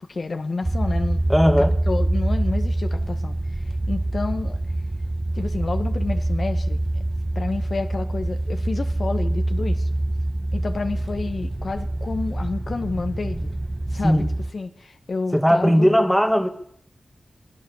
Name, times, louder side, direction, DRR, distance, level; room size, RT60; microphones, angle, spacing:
voice 1, 0.1-1.3 1.9-4.6 5.3-6.8 7.4-9.9 10.5-13.5 13.9-14.3 14.5-15.9, left 3 dB, 60° left, 1.6 m, -29 dB
sound 1, 0.6-14.5, right 1 dB, 25° right, 1.4 m, -25 dB
voice 2, 1.3-1.8 14.0-14.3 15.3-16.5, equal, ahead, 2.1 m, -18 dB
26.0 x 17.0 x 7.3 m
wide cardioid pair, 65°, 0 cm